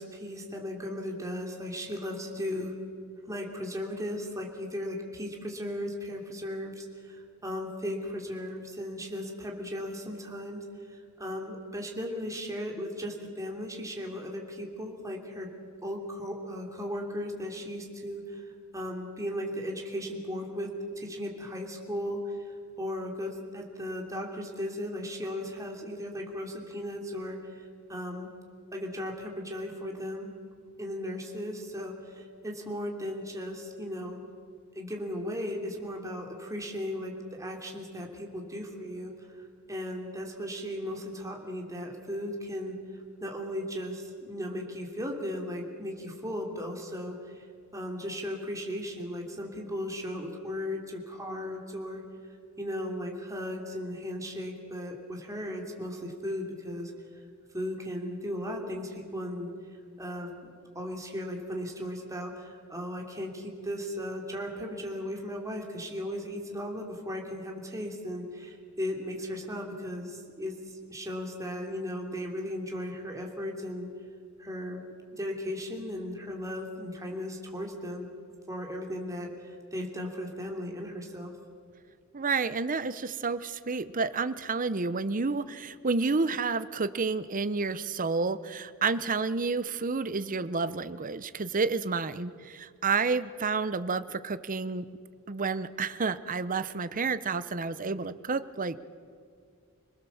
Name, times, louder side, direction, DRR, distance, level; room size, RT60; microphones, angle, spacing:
voice 1, 0.0-2.7 3.2-15.5 15.8-22.4 22.8-27.6 27.9-28.3 28.7-30.3 30.8-34.2 34.7-39.1 39.4-42.7 43.2-47.4 47.7-52.0 52.6-56.9 57.5-59.5 60.0-60.5 60.7-70.5 70.9-73.9 74.4-74.8 75.1-78.1 78.5-81.3, equal, 15° right, 0 dB, 3.1 m, -36 dB
voice 2, 82.1-94.9 95.3-98.8, right 4 dB, 40° right, 14 dB, 0.7 m, -30 dB
27.0 x 20.0 x 7.1 m, 2.2 s
head